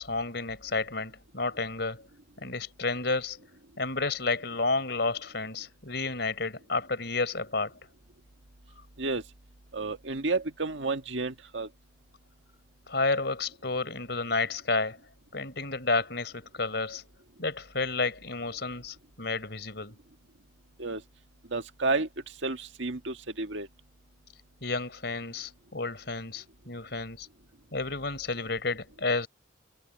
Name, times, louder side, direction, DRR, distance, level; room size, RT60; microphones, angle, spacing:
voice 1, 0.0-2.0 2.4-3.4 3.8-7.7 12.9-15.0 15.3-17.0 17.4-20.0 24.6-27.3 27.7-29.3, left 3 dB, 60° left, 4.7 m, -31 dB
voice 2, 9.7-11.7 20.8-21.0 21.5-22.1 22.4-23.7, right 3 dB, 75° right, 1.8 m, -31 dB
head